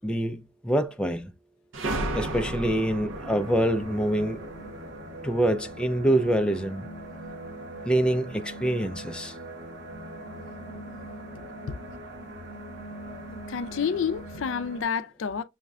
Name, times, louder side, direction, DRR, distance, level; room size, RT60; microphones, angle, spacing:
voice 1, 0.0-1.3 2.1-4.4 5.2-6.9 7.9-9.4, right 1 dB, 5° left, 0.3 m, -25 dB
sound 1, 1.7-6.2, right 1 dB, 75° right, 0.7 m, -35 dB
sound 2, 3.1-14.8, right 1 dB, 60° right, 1.1 m, -41 dB
voice 2, 13.5-15.4, left 6 dB, 70° left, 0.4 m, -29 dB
6.3 x 2.2 x 2.3 m
head